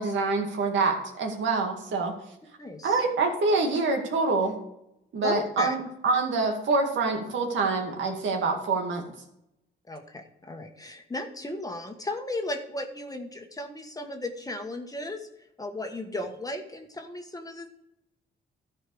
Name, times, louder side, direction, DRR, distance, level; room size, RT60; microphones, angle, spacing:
voice 1, 0.0-2.2 2.8-4.6 5.1-9.1, right 3 dB, 70° right, 2 dB, 2.1 m, -26 dB
voice 2, 2.6-3.0 5.2-5.7 9.9-15.3 15.6-17.7, left 2 dB, 20° left, 4 dB, 1.4 m, -35 dB
13.0 x 4.6 x 6.4 m, 0.83 s
cardioid pair, 90°, 20 cm